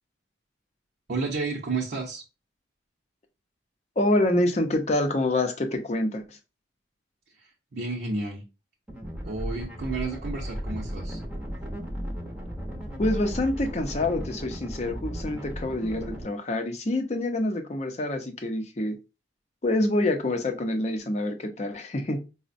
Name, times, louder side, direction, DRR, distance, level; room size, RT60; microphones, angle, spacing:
voice 1, 1.1-2.2 7.3-8.5 9.2-11.2, right 3 dB, 60° right, 0.7 m, -31 dB
voice 2, 4.0-6.4 13.0-19.0 19.6-22.2, left 1 dB, 35° left, 0.6 m, -26 dB
sound 1, 8.9-16.2, equal, 5° right, 0.7 m, -35 dB
4.9 x 2.1 x 2.5 m
head